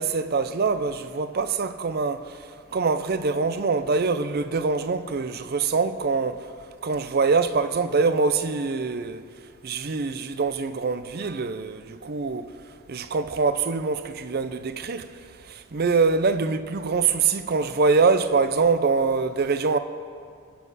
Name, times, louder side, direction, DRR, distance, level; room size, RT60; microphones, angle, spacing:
voice 1, 0.0-2.4 2.7-6.5 6.8-9.2 9.6-12.5 12.9-15.1 15.4-19.8, right 4 dB, 45° right, 0.5 m, -24 dB
21.0 x 7.2 x 4.1 m
head